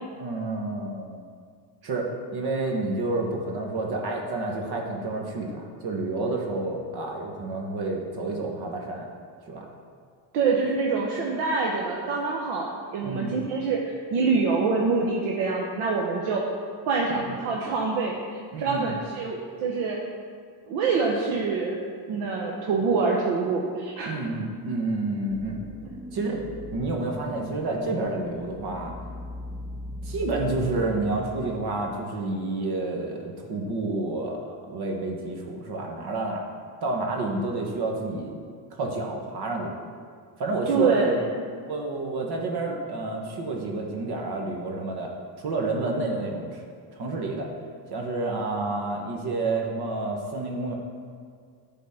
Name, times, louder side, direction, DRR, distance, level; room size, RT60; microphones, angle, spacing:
voice 1, 0.2-1.2 1.8-9.1 9.5-9.7 13.0-13.3 17.2-17.4 18.5-18.9 24.0-25.6 26.1-26.4 26.7-28.9 30.0-36.4 36.8-38.3 38.7-39.7 40.4-41.2 41.7-45.1 45.4-46.6 46.9-47.5 47.9-50.7, right 2 dB, 55° right, 0 dB, 1.4 m, -29 dB
voice 2, 10.3-16.4 16.9-20.0 20.7-21.8 22.1-24.1 40.7-41.2, right 4 dB, 85° right, -2 dB, 1.1 m, -25 dB
sound 1, 25.3-31.9, equal, 10° right, 0.6 m, -39 dB
10.0 x 4.1 x 5.8 m, 2.1 s
cardioid pair, 115°, 46 cm